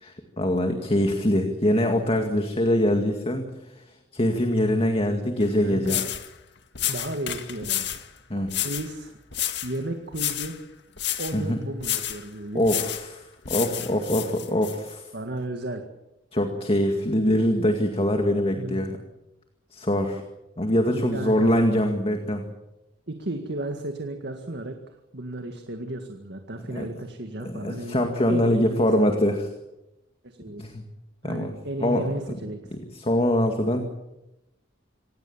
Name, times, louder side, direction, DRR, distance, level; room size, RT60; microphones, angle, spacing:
voice 1, 0.0-3.5 4.1-6.0 8.3-8.5 11.3-11.6 12.5-15.0 16.3-19.0 19.7-20.2 20.6-22.4 26.7-26.9 27.4-29.5 30.6-30.8 31.2-31.5 31.8-32.1 32.9-33.8, left 1 dB, 30° left, 5 dB, 2.1 m, -23 dB
sound 1, 5.4-5.5 5.8-6.3 6.8-8.1 8.5-8.9 9.3-9.8 10.1-10.6 11.0-11.4 11.8-12.2 12.6-13.1 13.5-14.8, left 12 dB, 65° left, 1.9 m, -30 dB
voice 2, 5.6-6.0 6.9-7.9 8.4-9.2 9.6-10.6 11.2-12.6 15.1-15.8 18.5-18.9 20.9-21.5 23.1-28.0 28.3-28.9 30.2-30.6 31.2-32.6, right 1 dB, 65° right, 5 dB, 1.9 m, -34 dB
26.0 x 18.0 x 7.3 m, 0.93 s
head